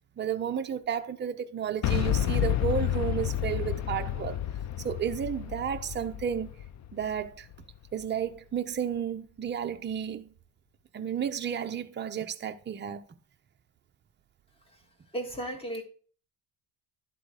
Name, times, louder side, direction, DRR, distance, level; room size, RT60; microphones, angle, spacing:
voice 1, 0.2-4.4 4.8-6.5 6.9-7.5 7.9-10.3 10.9-13.0, right 8 dB, 25° right, 0.6 m, -32 dB
Boom, 1.8-7.7, left 11 dB, 40° left, 0.5 m, -30 dB
voice 2, 15.1-15.8, right 1 dB, 10° left, 1.8 m, -34 dB
11.5 x 3.9 x 4.7 m
cardioid pair, 135°, 47 cm